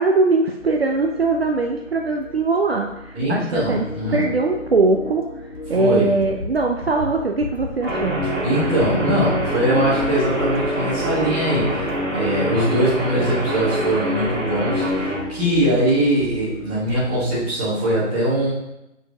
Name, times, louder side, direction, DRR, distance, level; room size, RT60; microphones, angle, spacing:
voice 1, 0.0-3.8 4.1-5.3 5.7-8.2, right 3 dB, 50° right, 2 dB, 0.6 m, -21 dB
sound 1, 0.6-17.5, left 1 dB, 75° left, 1.1 m, -37 dB
voice 2, 3.1-4.2 5.7-6.1 8.4-18.5, right 1 dB, 10° right, -11 dB, 1.4 m, -21 dB
sound 2, 6.2-6.5 6.8-7.1 7.4-7.7 8.0-8.3 8.6-8.9 9.2-9.5 9.8-10.1 10.4-10.7 11.0-11.3 11.6-11.9, left 3 dB, 15° left, 1.0 m, -33 dB
Guitar, 7.8-15.2, equal, 75° right, 2.1 m, -25 dB
6.1 x 4.6 x 3.9 m, 0.88 s
figure-of-eight pair, 160°, 39 cm